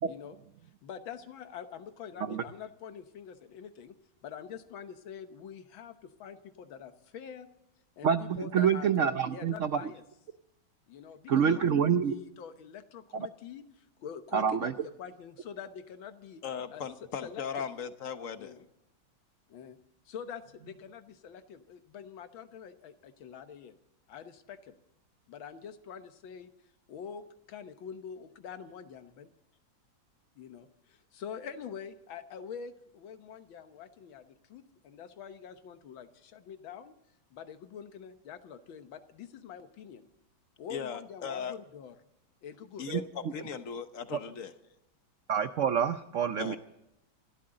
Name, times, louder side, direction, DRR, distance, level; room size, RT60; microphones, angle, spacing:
voice 1, 0.1-0.4 0.8-4.0 4.2-7.5 8.0-10.0 10.9-14.7 15.0-16.4 16.7-16.8 17.2-17.4 18.4-18.7 19.5-19.8 20.1-23.7 24.1-24.8 25.3-26.5 26.9-29.3 30.4-37.0 37.3-40.1 40.6-42.0 42.4-42.9 44.3-44.4, left 7 dB, 80° left, 1.8 m, -45 dB
voice 2, 8.0-9.9 11.3-12.1 13.1-13.3 14.3-14.7 42.9-43.3 45.3-46.6, right 7 dB, 75° right, 0.6 m, -27 dB
voice 3, 16.4-18.6 40.7-41.5 42.8-44.5 46.4-46.6, left 7 dB, 50° left, 1.2 m, -38 dB
27.5 x 12.5 x 3.8 m
omnidirectional pair, 2.1 m